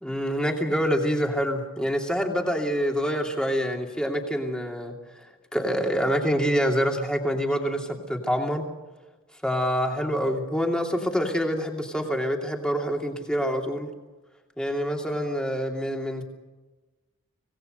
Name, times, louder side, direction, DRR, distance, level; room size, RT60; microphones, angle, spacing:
voice 1, 0.0-8.6 9.4-13.9 14.6-16.2, equal, 5° left, 2 dB, 2.8 m, -26 dB
26.0 x 18.5 x 6.6 m, 1.2 s
head